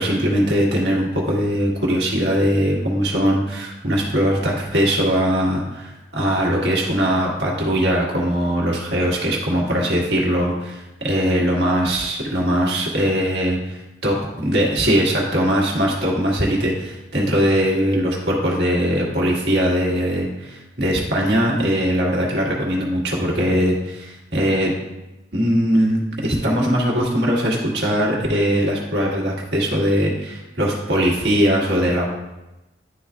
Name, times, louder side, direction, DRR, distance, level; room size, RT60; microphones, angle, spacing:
voice 1, 0.0-13.7 14.0-24.7 25.3-32.1, equal, 75° right, -3 dB, 1.6 m, -20 dB
10.5 x 3.9 x 2.4 m, 0.99 s
head